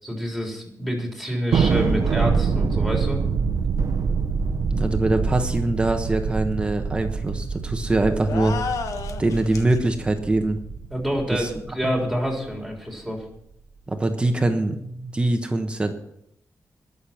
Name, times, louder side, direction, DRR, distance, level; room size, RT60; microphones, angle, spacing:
voice 1, 0.0-3.2 10.9-13.2, equal, ahead, 0 dB, 3.8 m, -27 dB
Thunder, 1.5-12.2, right 5 dB, 75° right, 1.0 m, -25 dB
voice 2, 4.7-8.6 9.2-10.6 11.3-11.5 11.8-11.9 13.9-15.9, right 2 dB, 20° right, 5 dB, 1.1 m, -23 dB
sound 1, 8.2-9.8, left 5 dB, 70° left, 1.3 m, -31 dB
20.0 x 6.8 x 5.9 m, 0.75 s
wide cardioid pair, 160°, 6 cm